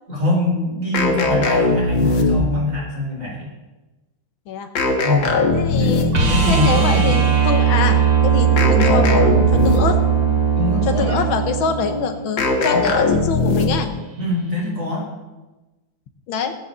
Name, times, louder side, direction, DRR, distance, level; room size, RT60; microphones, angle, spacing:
voice 1, 0.1-3.5 5.0-5.3 5.7-7.1 10.5-11.2 12.7-13.2 14.2-15.1, left 2 dB, 40° right, -2 dB, 4.9 m, -23 dB
sound 1, 0.9-2.7 4.8-6.4 8.6-10.1 12.4-14.0, left 2 dB, 70° left, 2.3 m, -19 dB
voice 2, 5.5-10.0 10.8-13.9 16.3-16.5, left 6 dB, 90° left, 6 dB, 1.9 m, -25 dB
sound 2, 6.1-12.1 14.6-14.7, right 7 dB, 60° right, 3.2 m, -18 dB
18.0 x 7.7 x 6.8 m, 1.1 s
omnidirectional pair, 2.1 m